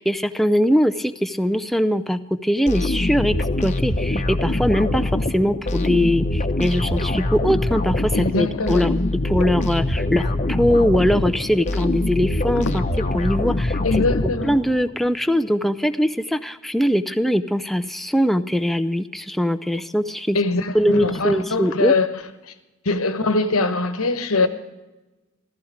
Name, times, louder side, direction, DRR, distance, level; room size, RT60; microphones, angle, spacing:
voice 1, 0.0-12.8 13.1-14.1 14.4-20.4 20.7-22.0, equal, ahead, 0.4 m, -21 dB
sound 1, 2.7-14.9, left 2 dB, 35° left, 0.9 m, -24 dB
voice 2, 8.1-8.8 13.8-14.6 20.3-22.1 22.5-22.6 22.8-24.5, left 3 dB, 85° left, 1.2 m, -22 dB
15.0 x 14.5 x 5.0 m
head